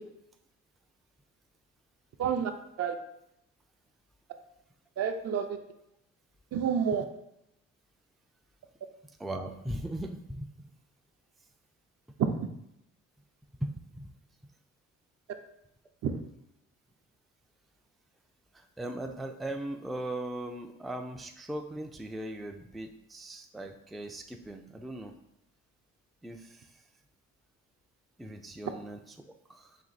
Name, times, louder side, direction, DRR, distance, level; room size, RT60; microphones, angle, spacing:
voice 1, 2.2-2.5 2.8-2.9 5.0-5.6 6.5-7.0 12.2-12.5 16.0-16.1, right 7 dB, 55° right, 7 dB, 0.6 m, -28 dB
voice 2, 9.2-10.7 13.6-14.1 18.5-25.2 26.2-26.7 28.2-29.8, right 1 dB, ahead, 5 dB, 0.3 m, -39 dB
4.4 x 2.7 x 4.0 m, 0.80 s
cardioid pair, 90°, 30 cm